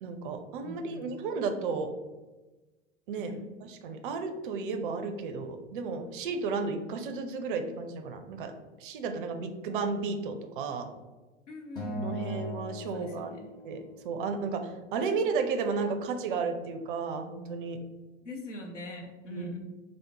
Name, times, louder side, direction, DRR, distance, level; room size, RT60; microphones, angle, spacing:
voice 1, 0.0-1.9 3.1-3.3 3.8-8.5 8.8-10.9 12.0-13.4 13.6-17.8 19.3-19.5, right 4 dB, 45° right, 6 dB, 0.4 m, -33 dB
voice 2, 0.6-1.1 3.1-3.4 11.5-12.6 12.9-13.5 18.2-19.6, equal, 80° left, 3 dB, 0.7 m, -42 dB
Acoustic guitar, 11.8-14.1, left 1 dB, 10° left, 0.9 m, -38 dB
3.4 x 2.1 x 2.9 m, 1.2 s
figure-of-eight pair, 90°, 36 cm